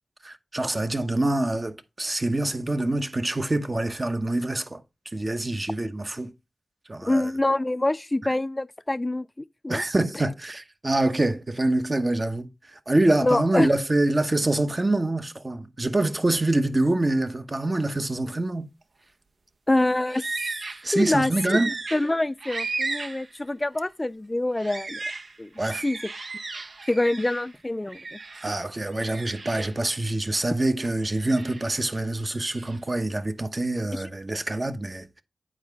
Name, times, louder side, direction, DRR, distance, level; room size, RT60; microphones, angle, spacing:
voice 1, 0.2-4.8 5.1-6.3 6.9-7.3 9.7-18.7 20.8-21.7 25.6-25.8 28.4-35.2, right 2 dB, 40° right, 0.9 m, -25 dB
voice 2, 7.1-9.8 10.1-10.2 13.2-13.7 19.7-20.2 20.9-25.0 25.4-25.5 25.8-26.0 26.9-28.2 33.9-34.1, left 2 dB, 30° left, 0.4 m, -25 dB
sound 1, 20.1-20.9 21.3-23.3 23.7-23.9 24.6-27.5 27.9-28.6 28.9-29.8 30.8-31.8 32.2-32.8, right 3 dB, 65° right, 0.8 m, -35 dB
8.8 x 4.7 x 3.5 m
cardioid pair, 40°, 0 cm